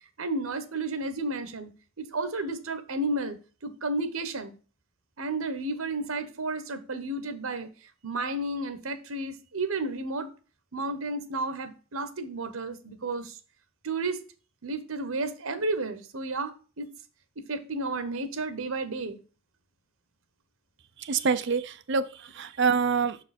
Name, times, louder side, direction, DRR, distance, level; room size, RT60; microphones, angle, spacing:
voice 1, 0.2-4.6 5.2-7.7 8.0-10.3 10.7-13.4 13.8-14.2 14.6-16.9 17.4-19.2, right 2 dB, 85° right, 1.1 m, -32 dB
voice 2, 21.0-23.2, right 5 dB, 60° right, 0.6 m, -26 dB
6.4 x 4.7 x 4.2 m
head